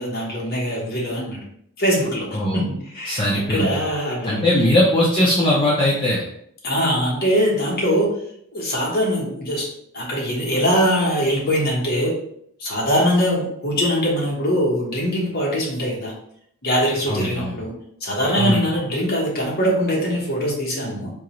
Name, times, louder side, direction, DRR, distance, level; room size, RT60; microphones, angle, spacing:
voice 1, 0.0-1.4 1.8-4.7 6.6-8.1 8.5-9.7 9.9-12.1 12.6-16.1 16.6-17.7 18.0-21.1, equal, 45° left, -3 dB, 1.1 m, -22 dB
voice 2, 3.1-3.7 4.2-6.2 17.1-17.5 18.4-18.6, left 1 dB, 20° left, -6 dB, 0.5 m, -19 dB
3.7 x 2.8 x 3.0 m, 0.70 s
head